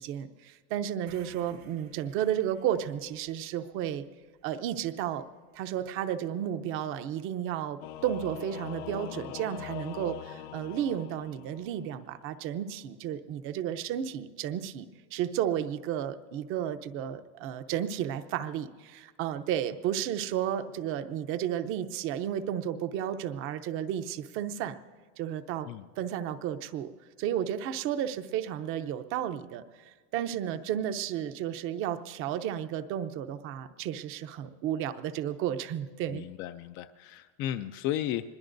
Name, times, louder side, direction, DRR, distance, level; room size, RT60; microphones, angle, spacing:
voice 1, 0.0-4.0 4.4-5.2 5.5-14.9 15.1-24.8 25.2-25.7 26.0-26.9 27.2-36.3, right 10 dB, 40° right, 11 dB, 0.7 m, -33 dB
sound 1, 1.1-5.2, right 8 dB, 80° right, 3.3 m, -59 dB
Singing / Musical instrument, 7.8-11.9, left 12 dB, 70° left, 0.7 m, -42 dB
voice 2, 36.1-38.4, left 12 dB, 40° left, 9 dB, 0.4 m, -34 dB
25.0 x 21.5 x 2.6 m, 1.5 s
supercardioid pair, 155°, 31 cm